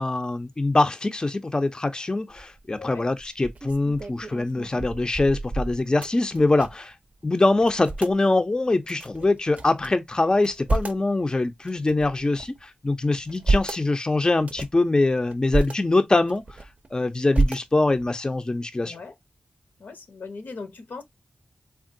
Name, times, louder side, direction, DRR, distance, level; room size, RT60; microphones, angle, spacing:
voice 1, 0.0-6.9 7.2-16.4 16.9-19.0, left 2 dB, 25° left, 0.4 m, -23 dB
sound 1, 2.3-2.7 3.2-6.9 7.2-7.3 7.6-8.2 8.8-9.9 10.3-11.1 11.7-12.6 13.1-13.8 14.4-14.8 15.3-15.7 16.2-16.9 17.3-18.1, right 2 dB, 50° right, 0.5 m, -29 dB
voice 2, 18.8-19.2 19.8-21.0, left 4 dB, 80° left, 0.6 m, -39 dB
3.5 x 2.3 x 2.5 m
cardioid pair, 55°, 3 cm